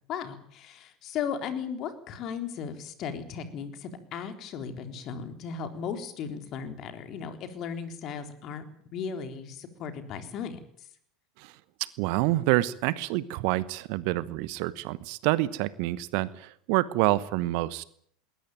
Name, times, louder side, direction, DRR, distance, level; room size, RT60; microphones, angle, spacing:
voice 1, 0.1-8.6 8.9-10.6, left 7 dB, 40° left, 7 dB, 3.9 m, -36 dB
voice 2, 11.8-17.9, right 18 dB, 50° right, 18 dB, 1.0 m, -27 dB
21.0 x 19.0 x 9.2 m, 0.65 s
figure-of-eight pair, 80°, 0 cm